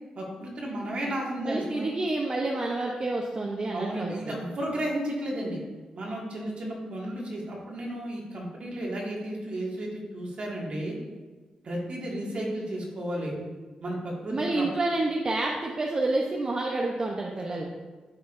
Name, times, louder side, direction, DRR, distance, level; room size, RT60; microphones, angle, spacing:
voice 1, 0.2-1.9 3.7-5.6 6.0-11.0 11.6-13.3 13.8-14.7 17.5-17.7, right 1 dB, 60° right, -3 dB, 1.9 m, -33 dB
voice 2, 1.4-4.4 14.3-17.7, right 2 dB, 40° right, -1 dB, 0.7 m, -29 dB
10.5 x 4.3 x 2.6 m, 1.3 s
cardioid pair, 60°, 2 cm